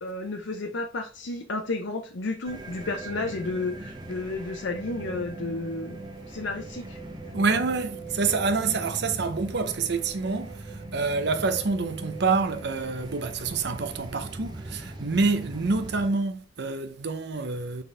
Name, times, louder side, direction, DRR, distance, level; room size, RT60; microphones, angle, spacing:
voice 1, 0.0-6.0 6.3-7.0 7.3-7.5, left 3 dB, 70° left, 0.6 m, -32 dB
sound 1, 2.5-16.1, right 2 dB, 20° right, 0.7 m, -40 dB
voice 2, 7.3-17.8, right 4 dB, 60° right, 0.7 m, -27 dB
7.8 x 3.7 x 3.3 m
head